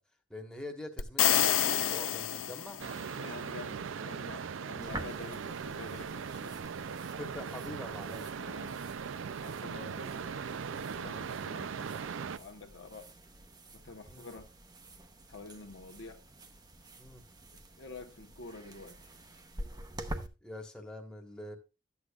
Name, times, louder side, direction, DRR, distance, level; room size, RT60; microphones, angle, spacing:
voice 1, 0.3-2.8 7.2-8.3 14.1-14.3 17.0-17.2 20.4-21.6, left 1 dB, 5° left, 1.3 m, -44 dB
sound 1, 1.0-3.1, left 10 dB, 85° left, 0.5 m, -28 dB
sound 2, 2.8-12.4, right 6 dB, 80° right, 0.5 m, -39 dB
voice 2, 3.1-6.7 8.4-8.9 9.4-13.2 13.7-14.5 15.3-16.3 17.5-19.1, left 3 dB, 65° left, 1.0 m, -48 dB
sound 3, 4.8-20.3, right 1 dB, 20° right, 0.8 m, -48 dB
12.5 x 8.5 x 2.3 m
head